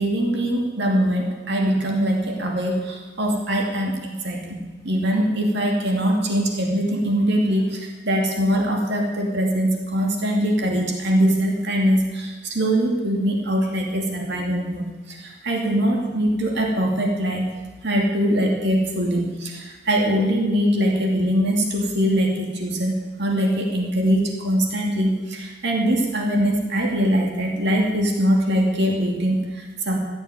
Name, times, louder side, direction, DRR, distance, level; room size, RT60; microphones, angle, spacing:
voice 1, 0.0-4.6 4.8-17.5 17.8-30.0, equal, 55° right, 0 dB, 2.5 m, -22 dB
14.5 x 8.8 x 9.4 m, 1.2 s
head